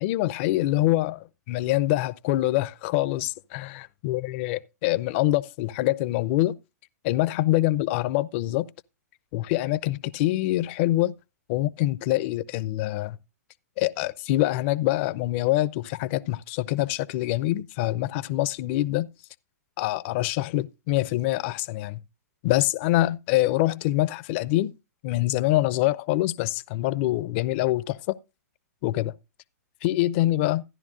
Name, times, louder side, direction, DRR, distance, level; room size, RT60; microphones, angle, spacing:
voice 1, 0.0-6.6 7.0-8.7 9.3-11.1 11.5-13.2 13.8-19.1 19.8-22.0 22.4-24.7 25.0-28.2 28.8-29.1 29.8-30.6, left 16 dB, 45° left, 0.6 m, -25 dB
14.0 x 10.5 x 2.5 m
hypercardioid pair, 120°, 9 cm